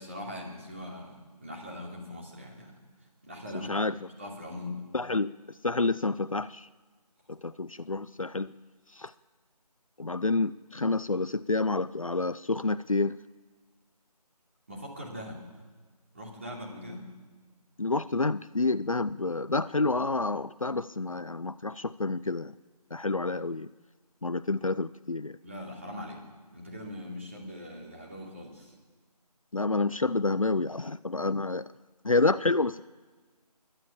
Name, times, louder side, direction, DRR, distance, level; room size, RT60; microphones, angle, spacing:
voice 1, 0.0-2.7 3.2-4.9 14.7-15.5 16.1-17.1 25.4-26.2 26.5-28.7, left 1 dB, 20° right, -2 dB, 3.1 m, -41 dB
voice 2, 4.9-5.3 5.6-6.7 7.3-8.5 9.0-9.1 10.0-13.2 17.8-22.5 22.9-23.7 24.2-25.3 29.5-31.7 32.0-32.8, left 3 dB, 55° left, 15 dB, 0.6 m, -28 dB
29.0 x 12.0 x 8.5 m, 1.4 s
figure-of-eight pair, 180°, 21 cm